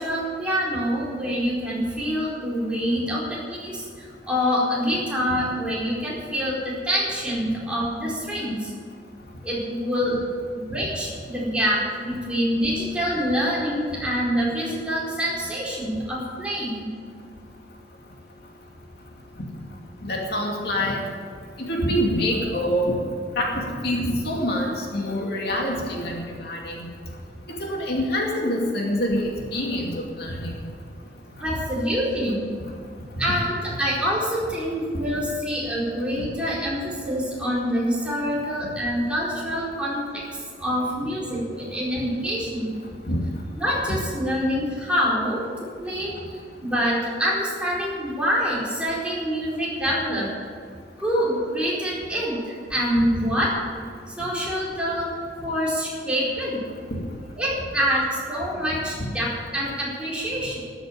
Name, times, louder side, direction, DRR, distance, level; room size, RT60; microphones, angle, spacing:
voice 1, 0.0-8.7 9.4-10.2 10.5-16.8 31.4-32.4 33.2-42.7 43.6-45.4 45.8-50.3 51.0-52.4 52.7-53.5 54.2-55.1 55.4-56.6 57.4-60.6, equal, 5° right, -6 dB, 4.4 m, -26 dB
voice 2, 20.0-21.0 21.7-22.9 23.4-23.5 23.8-26.9 27.6-29.2 29.5-30.5 43.1-43.2 56.9-57.0, equal, 60° left, -1 dB, 2.5 m, -25 dB
13.5 x 9.0 x 8.8 m, 2.1 s
head